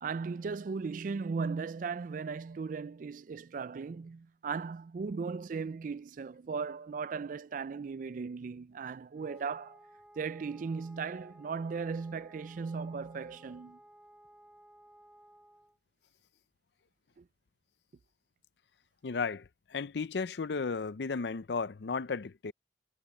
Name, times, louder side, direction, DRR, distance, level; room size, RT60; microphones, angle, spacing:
voice 1, 0.0-9.8 10.2-13.8 17.2-17.3, right 5 dB, 50° right, 0.3 m, -37 dB
Wind instrument woodwind instrument, 9.1-15.8, right 1 dB, 5° right, 4.5 m, -58 dB
voice 2, 19.0-22.5, left 4 dB, 70° left, 0.5 m, -34 dB
head